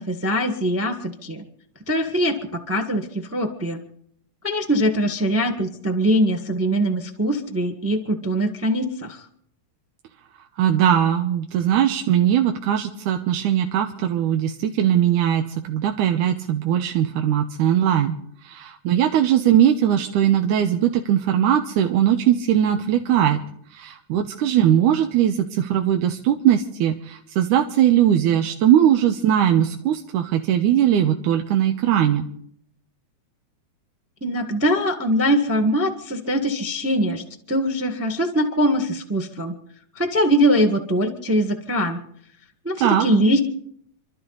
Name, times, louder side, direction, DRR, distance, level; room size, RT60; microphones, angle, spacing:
voice 1, 0.0-1.4 1.9-3.8 4.4-9.2 34.2-39.5 39.9-42.0 42.6-43.4, equal, 15° right, 5 dB, 0.5 m, -22 dB
voice 2, 10.6-18.2 18.4-23.4 23.7-32.3 42.8-43.1, right 10 dB, 90° right, 5 dB, 2.5 m, -20 dB
28.5 x 12.5 x 4.0 m, 0.69 s
omnidirectional pair, 3.4 m